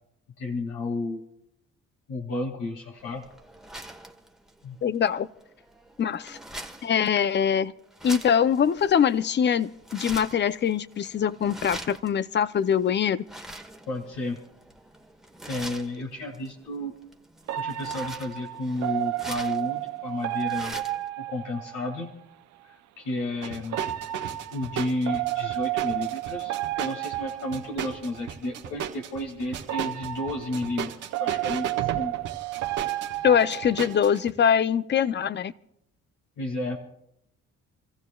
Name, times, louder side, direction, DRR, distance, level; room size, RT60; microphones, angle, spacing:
voice 1, 0.4-1.2 2.1-3.3 4.6-4.8 13.9-14.4 15.5-16.9 17.5-20.8 21.2-22.2 22.6-23.8 24.5-30.9 31.2-32.1 36.4-36.8, left 2 dB, 80° left, 1 dB, 2.2 m, -32 dB
sound 1, 3.0-21.1, right 1 dB, ahead, 1.3 m, -44 dB
voice 2, 4.8-5.3 6.0-6.4 6.8-7.7 8.0-13.2 33.2-35.5, left 8 dB, 35° left, 16 dB, 0.5 m, -23 dB
sound 2, 17.5-22.1 23.7-28.3 29.6-34.3, right 16 dB, 65° right, 0.5 m, -32 dB
sound 3, 23.4-34.3, right 9 dB, 85° right, 1.4 m, -36 dB
29.5 x 15.0 x 2.3 m, 0.79 s
cardioid pair, 90°, 30 cm